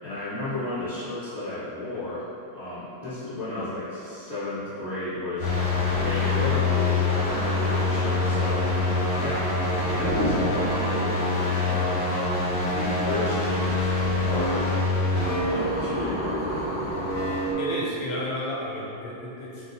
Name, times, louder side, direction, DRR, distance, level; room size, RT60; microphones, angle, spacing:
voice 1, 0.0-8.6 9.1-9.6 9.9-16.7, left 2 dB, 30° left, -16 dB, 1.1 m, -33 dB
sound 1, 5.4-17.5, left 2 dB, 10° left, 0.8 m, -25 dB
sound 2, 9.1-11.7, left 1 dB, 55° left, 1.0 m, -31 dB
voice 2, 17.6-19.7, left 1 dB, 75° left, -5 dB, 1.2 m, -32 dB
3.8 x 2.3 x 3.8 m, 2.8 s
omnidirectional pair, 2.3 m